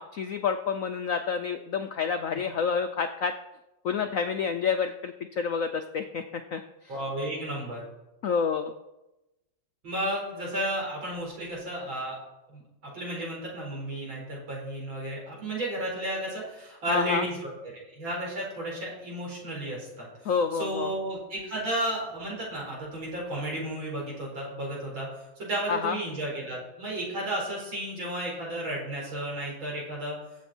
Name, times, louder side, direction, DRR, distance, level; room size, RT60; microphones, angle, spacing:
voice 1, 0.0-3.3 3.8-6.6 8.2-8.7 16.9-17.3 20.2-20.9 25.7-26.0, left 6 dB, 70° left, 7 dB, 0.7 m, -28 dB
voice 2, 6.9-7.9 9.8-12.2 12.5-17.5 17.9-20.3 20.6-25.1 25.4-30.2, right 1 dB, 75° right, -4 dB, 5.6 m, -33 dB
22.5 x 7.5 x 4.4 m, 0.99 s
omnidirectional pair, 2.1 m